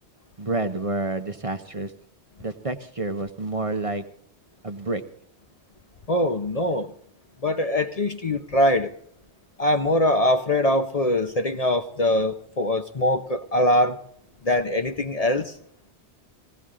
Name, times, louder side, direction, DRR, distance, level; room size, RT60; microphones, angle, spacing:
voice 1, 0.4-1.9 2.4-4.0 4.6-5.0, right 2 dB, 35° right, 0.8 m, -29 dB
voice 2, 6.1-6.9 7.4-8.9 9.6-14.0 14.4-15.6, left 1 dB, 40° left, 0.8 m, -22 dB
19.0 x 16.5 x 3.7 m
omnidirectional pair, 1.1 m